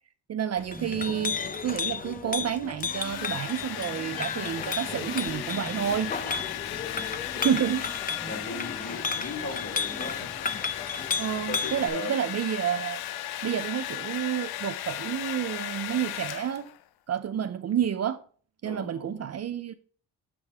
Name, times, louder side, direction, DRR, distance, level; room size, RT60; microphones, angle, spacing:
voice 1, 0.3-6.2 7.4-7.9 11.2-13.0 13.4-16.7 17.1-18.2 18.6-19.7, right 9 dB, 45° right, 0.5 m, -29 dB
sound 1, 0.5-3.4 4.2-11.1 11.5-11.8, right 3 dB, 15° right, 1.2 m, -48 dB
Chink clink, 0.6-11.9, left 5 dB, 25° left, 0.6 m, -34 dB
Domestic sounds home sounds, 2.6-16.8, left 13 dB, 80° left, 0.5 m, -36 dB
voice 2, 6.5-7.1 8.3-10.7 10.9-12.2 18.6-19.2, left 2 dB, 40° left, 2.8 m, -39 dB
7.3 x 5.1 x 3.4 m
cardioid pair, 85°, 37 cm